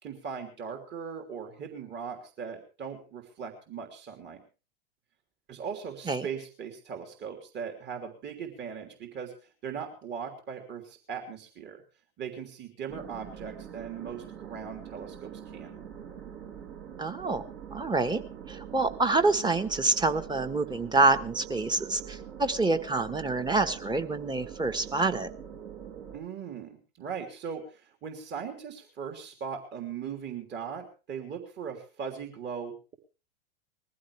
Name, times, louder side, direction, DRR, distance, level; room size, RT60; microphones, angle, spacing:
voice 1, 0.0-4.4 5.5-9.3 9.6-11.8 12.2-15.8 26.1-32.9, right 7 dB, 35° right, 4 dB, 3.2 m, -39 dB
sound 1, 12.9-26.2, right 8 dB, 60° right, 7.8 m, -44 dB
voice 2, 17.0-17.4 17.7-18.2 18.5-25.3, right 3 dB, 15° right, 8 dB, 1.4 m, -27 dB
21.0 x 15.0 x 3.4 m, 0.33 s
hypercardioid pair, 95°, 30 cm